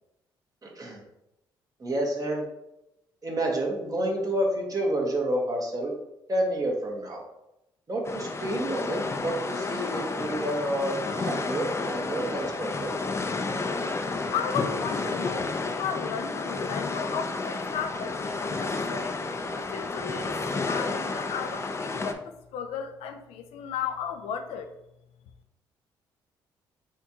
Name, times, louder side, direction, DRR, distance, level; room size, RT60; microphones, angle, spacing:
voice 1, 0.6-1.0 1.8-2.4 3.2-5.9 6.3-7.2 7.9-12.9, right 1 dB, 35° right, 0 dB, 1.5 m, -29 dB
sound 1, 8.0-22.1, left 3 dB, 25° left, 0.6 m, -31 dB
voice 2, 14.3-19.2 19.5-24.7, left 7 dB, 75° left, 6 dB, 0.5 m, -34 dB
4.4 x 3.5 x 2.9 m, 0.86 s
hypercardioid pair, 50°, 11 cm